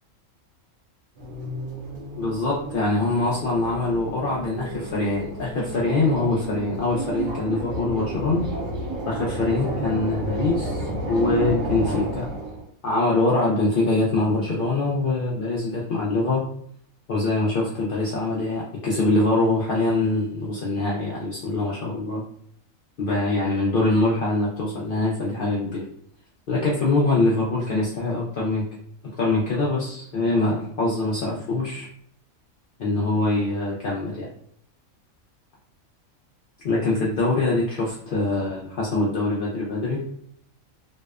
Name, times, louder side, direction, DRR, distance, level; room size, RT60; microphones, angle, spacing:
sound 1, 1.2-12.7, right 1 dB, 80° right, 1.1 m, -31 dB
voice 1, 2.2-8.5 9.0-12.3 12.8-16.4 17.1-22.2 23.0-25.8 26.5-28.6 29.2-31.9 32.8-34.3 36.6-40.0, left 2 dB, 80° left, -5 dB, 0.4 m, -24 dB
2.7 x 2.0 x 2.3 m, 0.65 s
omnidirectional pair, 1.4 m